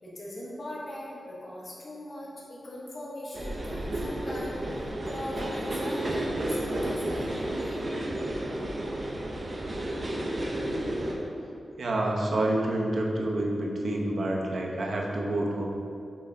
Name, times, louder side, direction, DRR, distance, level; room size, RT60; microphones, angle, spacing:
voice 1, 0.0-4.6 5.1-8.0, left 1 dB, 40° left, -6 dB, 1.4 m, -40 dB
sound 1, 3.3-11.1, right 1 dB, 40° right, 0.8 m, -32 dB
voice 2, 11.8-15.6, right 1 dB, 70° right, -1 dB, 0.9 m, -28 dB
6.2 x 3.9 x 4.5 m, 2.5 s
wide cardioid pair, 120°, 0 cm